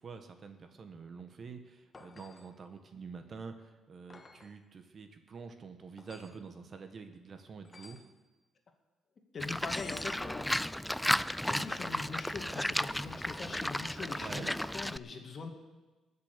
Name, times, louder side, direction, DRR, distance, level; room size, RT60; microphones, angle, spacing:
voice 1, 0.0-8.0 14.2-14.5, right 5 dB, 45° right, 7 dB, 1.5 m, -47 dB
sound 1, 1.9-2.6 4.1-4.6 6.0-6.4 7.6-8.1 9.7-10.2 11.5-12.0 14.8-14.9, left 3 dB, 30° left, 1.4 m, -54 dB
voice 2, 9.3-11.1 11.5-15.5, left 4 dB, 45° left, 3 dB, 2.4 m, -42 dB
Livestock farm animals working animals, 9.4-15.0, left 1 dB, 5° left, 0.4 m, -34 dB
20.5 x 7.0 x 6.9 m, 1.2 s
cardioid pair, 90°, 0 cm